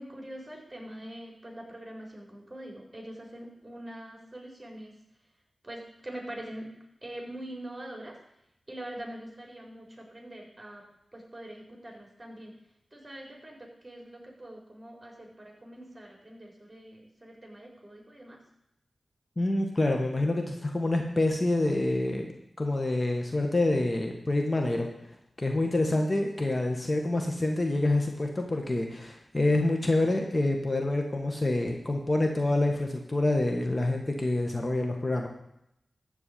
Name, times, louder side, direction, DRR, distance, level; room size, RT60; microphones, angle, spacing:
voice 1, 0.0-4.9 5.6-6.7 7.0-8.2 8.7-10.9 11.1-12.6 12.9-18.4, right 1 dB, 20° right, -1 dB, 4.5 m, -43 dB
voice 2, 19.4-22.3 22.6-24.9 25.4-35.3, left 2 dB, 35° left, 2 dB, 1.6 m, -27 dB
13.5 x 4.7 x 8.6 m, 0.80 s
cardioid pair, 50°, 0 cm